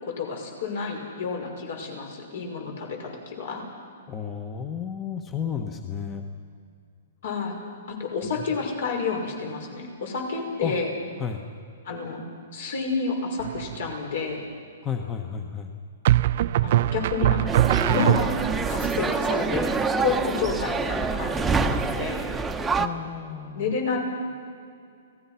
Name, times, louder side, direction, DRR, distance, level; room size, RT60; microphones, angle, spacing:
voice 1, 0.0-3.6 7.2-7.6 7.9-10.9 11.8-12.2 12.5-14.4 16.6-17.5 17.9-18.3 18.7-19.7 20.0-21.7 22.0-22.3 23.5-24.0, left 5 dB, 65° left, 2 dB, 5.9 m, -30 dB
voice 2, 4.1-6.2 8.2-8.4 10.6-10.7 11.2-11.4 14.8-15.7 22.7-23.7, left 7 dB, 20° left, 5 dB, 1.3 m, -32 dB
sound 1, 13.4-13.9 16.0-18.7, right 14 dB, 55° right, 0.5 m, -22 dB
sound 2, 17.5-22.9, right 4 dB, 10° right, 1.0 m, -26 dB
30.0 x 18.5 x 5.9 m, 2.3 s
hypercardioid pair, 145°, 0 cm